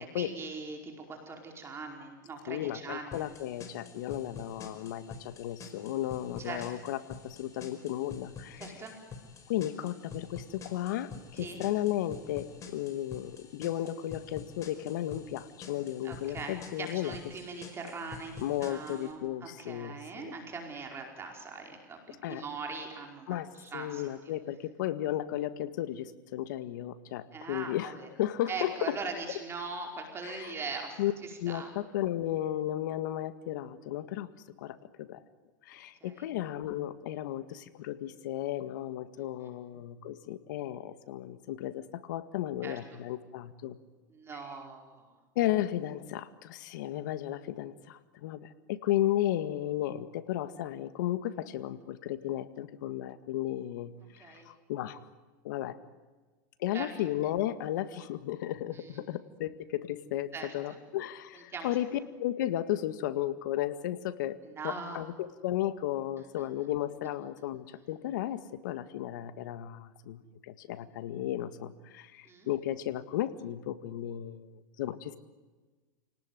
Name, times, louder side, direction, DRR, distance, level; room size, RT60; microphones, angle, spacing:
voice 1, 0.1-3.2 6.4-6.8 8.6-8.9 11.3-11.6 16.0-24.1 27.3-28.1 28.5-31.7 36.0-36.3 39.2-39.5 42.6-42.7 44.1-45.1 54.2-54.5 56.7-56.9 58.7-59.0 60.3-60.5 61.3-61.7 64.4-65.0 66.4-66.5 72.2-72.5, right 4 dB, 25° right, 2 dB, 4.9 m, -41 dB
voice 2, 2.5-8.6 9.5-17.2 18.4-20.0 22.2-22.4 23.3-23.5 23.7-29.0 30.2-30.5 31.0-31.1 31.4-34.3 34.6-35.2 35.7-43.8 45.4-55.0 55.4-55.8 56.6-64.4 64.6-75.2, left 13 dB, 75° left, 12 dB, 1.9 m, -34 dB
sound 1, 3.1-19.1, left 5 dB, 30° left, 5.0 m, -48 dB
29.0 x 19.0 x 9.4 m, 1.3 s
hypercardioid pair, 115°, 10 cm